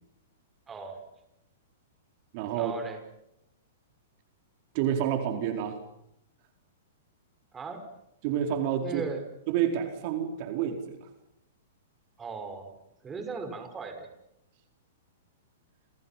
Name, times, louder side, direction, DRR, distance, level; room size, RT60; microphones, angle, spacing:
voice 1, 0.7-1.1 2.5-3.0 7.5-7.9 8.8-9.2 12.2-12.8 13.0-14.1, right 4 dB, 20° right, 7 dB, 5.5 m, -38 dB
voice 2, 2.3-2.7 4.7-5.8 8.2-9.0 9.5-11.1, right 9 dB, 50° right, 5 dB, 4.5 m, -29 dB
30.0 x 29.5 x 6.0 m, 0.80 s
hypercardioid pair, 120°, 0 cm